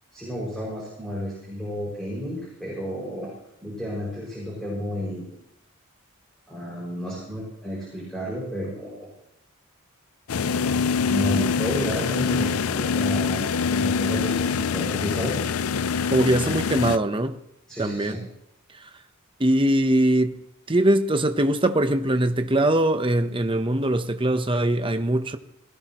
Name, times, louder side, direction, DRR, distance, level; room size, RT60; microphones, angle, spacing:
voice 1, 0.1-3.3 3.6-5.3 6.5-9.1 11.0-15.4 17.7-18.2, equal, ahead, 6.0 m, -31 dB
sound 1, 10.3-17.0, left 5 dB, 80° left, 0.5 m, -24 dB
voice 2, 16.1-17.4 17.8-18.2 19.4-20.4 20.7-25.4, right 1 dB, 25° right, 0.9 m, -22 dB
20.0 x 17.5 x 3.1 m
head